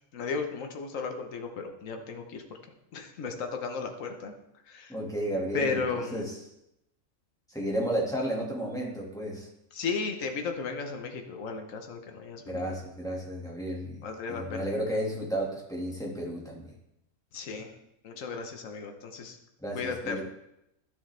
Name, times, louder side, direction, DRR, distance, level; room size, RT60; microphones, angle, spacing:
voice 1, 0.1-2.4 2.9-4.3 4.7-4.9 5.5-6.2 9.7-12.7 14.0-14.7 17.3-17.7 18.0-19.4 19.7-20.2, left 4 dB, 70° left, 4 dB, 1.4 m, -34 dB
voice 2, 4.9-5.8 6.1-6.3 7.5-9.5 12.5-16.7 19.6-20.2, right 1 dB, ahead, -2 dB, 1.8 m, -32 dB
12.5 x 6.9 x 3.3 m, 0.84 s
omnidirectional pair, 1.5 m